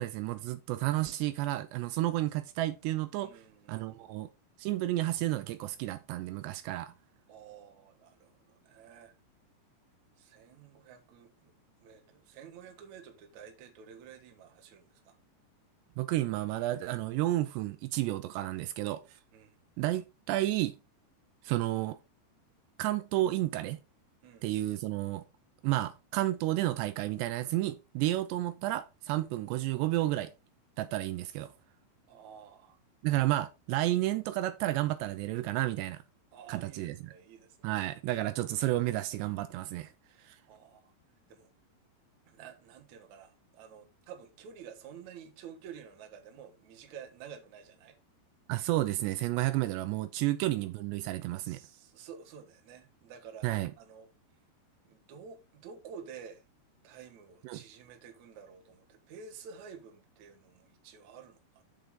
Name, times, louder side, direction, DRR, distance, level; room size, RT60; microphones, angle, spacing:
voice 1, 0.0-3.4 3.7-4.3 4.6-6.9 16.0-19.0 19.8-20.8 21.4-22.0 22.8-23.8 24.4-25.2 25.6-30.3 30.8-31.5 33.0-36.0 36.5-37.0 37.6-39.9 40.2-40.4 48.5-51.6 53.4-53.7 57.4-57.6, right 15 dB, 80° right, 2.7 m, -31 dB
voice 2, 3.2-4.1 7.3-9.1 10.2-11.5 11.8-15.2 19.3-19.6 24.2-24.5 32.1-32.8 36.3-37.8 40.5-40.9 41.3-41.5 42.3-48.0 50.1-50.3 51.4-53.5 53.8-54.1 54.8-56.4 56.8-61.6, right 7 dB, 60° right, 2.1 m, -51 dB
8.0 x 6.7 x 3.7 m
omnidirectional pair, 5.1 m